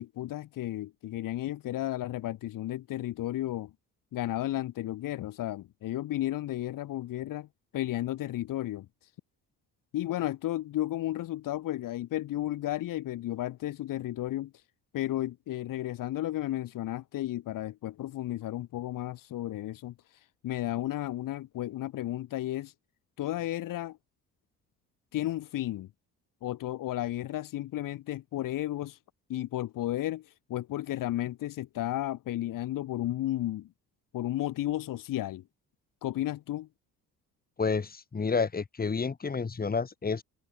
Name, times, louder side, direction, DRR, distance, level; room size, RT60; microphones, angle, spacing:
voice 1, 0.0-3.7 4.1-7.5 7.7-8.9 9.9-14.5 14.9-22.7 23.2-24.0 25.1-25.9 26.4-29.0 29.3-33.7 34.1-35.4 36.0-36.7, left 14 dB, 70° left, 2.2 m, -33 dB
voice 2, 37.6-40.2, left 5 dB, 25° left, 5.8 m, -30 dB
cardioid pair, 125°, 34 cm